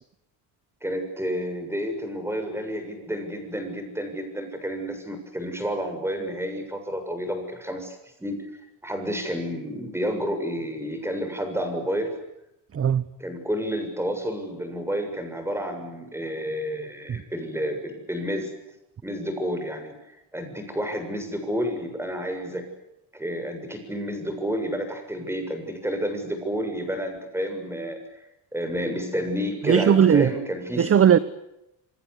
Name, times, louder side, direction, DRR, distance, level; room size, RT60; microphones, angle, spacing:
voice 1, 0.8-8.5 8.8-12.1 13.2-18.5 19.0-22.7 23.1-28.2 28.5-30.9, equal, 5° right, 7 dB, 7.2 m, -30 dB
voice 2, 12.7-13.0 17.1-17.2 29.7-30.3 30.8-31.2, right 8 dB, 30° right, 15 dB, 1.0 m, -18 dB
27.5 x 25.0 x 8.4 m, 0.87 s
cardioid pair, 140°, 44 cm